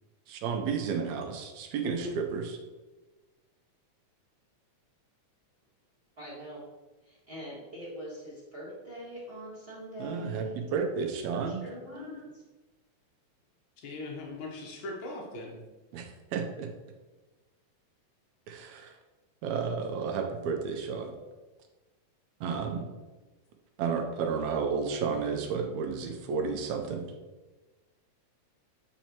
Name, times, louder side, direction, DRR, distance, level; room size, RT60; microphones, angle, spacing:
voice 1, 0.3-2.4 10.0-11.7 15.9-16.7 18.5-19.0 19.4-21.1 22.4-22.9 23.8-27.0, right 5 dB, 80° right, 4 dB, 2.0 m, -32 dB
voice 2, 6.2-6.6 7.0-10.6 11.4-12.2, right 1 dB, 40° right, -7 dB, 0.8 m, -43 dB
voice 3, 11.9-12.2 13.8-15.6, left 2 dB, 85° left, -1 dB, 1.0 m, -39 dB
8.2 x 4.5 x 2.9 m, 1.2 s
omnidirectional pair, 3.5 m